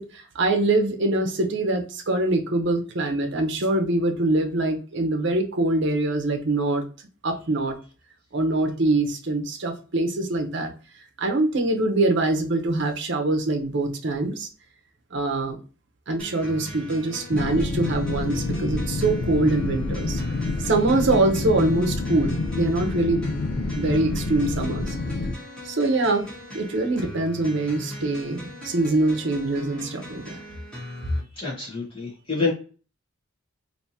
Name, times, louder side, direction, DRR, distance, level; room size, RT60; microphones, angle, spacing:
voice 1, 0.0-6.8 7.2-7.7 8.3-10.7 11.2-14.5 15.1-15.6 16.1-20.2 20.6-23.3 23.7-25.0 25.6-26.3 26.5-30.4, right 2 dB, 60° right, 3 dB, 0.7 m, -24 dB
sound 1, 16.2-31.2, equal, 5° left, 1.2 m, -40 dB
sound 2, 17.3-25.3, left 3 dB, 90° left, 0.5 m, -28 dB
voice 2, 31.4-32.5, left 4 dB, 25° left, -6 dB, 1.2 m, -27 dB
3.4 x 2.7 x 2.7 m, 0.36 s
head